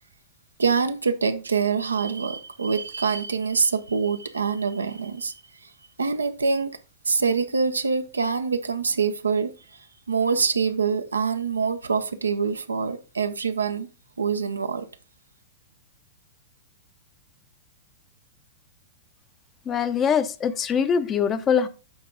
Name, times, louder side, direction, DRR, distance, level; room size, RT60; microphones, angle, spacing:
voice 1, 0.6-5.3 6.0-6.8 7.1-9.5 10.1-13.9 14.2-14.9, right 5 dB, 85° right, 0.7 m, -25 dB
voice 2, 19.7-21.7, left 7 dB, 25° left, 0.7 m, -23 dB
8.1 x 4.6 x 3.8 m
figure-of-eight pair, 105°, 0 cm